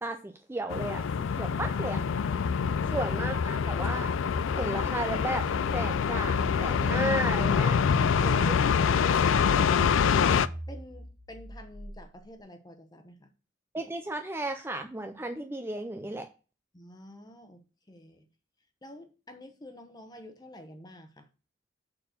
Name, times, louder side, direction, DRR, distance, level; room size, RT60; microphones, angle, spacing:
voice 1, 0.0-2.0 2.9-4.1 4.5-5.5 5.7-7.8 8.2-8.6 9.5-9.7 13.7-16.3, right 1 dB, 10° right, 0.4 m, -34 dB
sound 1, 0.7-10.5, left 6 dB, 85° left, 0.4 m, -26 dB
sound 2, 2.3-12.4, right 1 dB, 70° right, 1.4 m, -46 dB
voice 2, 10.7-13.3 16.7-18.3 18.8-21.3, left 1 dB, 20° left, 1.0 m, -49 dB
6.6 x 4.4 x 6.5 m
head